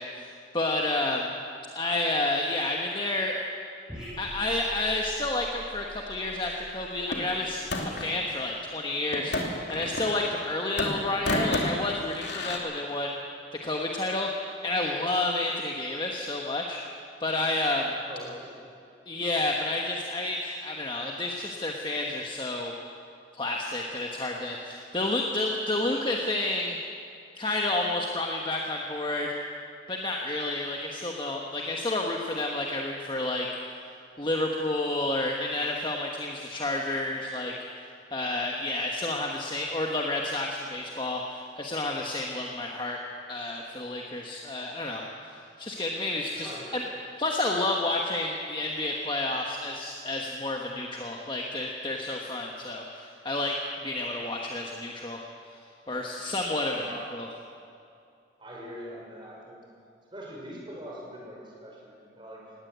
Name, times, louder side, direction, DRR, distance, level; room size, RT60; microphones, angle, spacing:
voice 1, 0.0-1.3 1.7-3.5 4.2-9.4 9.7-13.2 13.6-14.3 14.6-16.8 17.2-17.9 19.1-22.7 23.3-26.8 27.4-29.4 29.9-33.5 34.2-37.5 38.1-43.0 43.3-45.1 45.6-46.8 47.2-53.6 53.8-55.2 55.9-56.8 57.1-57.3, left 2 dB, 25° left, 0 dB, 1.3 m, -30 dB
sound 1, 3.9-8.5, equal, 5° right, 7.3 m, -46 dB
sound 2, 7.1-8.2 9.1-10.5 10.8-12.6, left 1 dB, 65° left, 2.5 m, -31 dB
voice 2, 18.0-18.7 19.5-19.6 46.3-46.9 56.6-57.1 58.4-59.6 60.1-62.4, equal, 25° right, -3 dB, 5.9 m, -43 dB
20.0 x 17.5 x 8.2 m, 2.4 s
head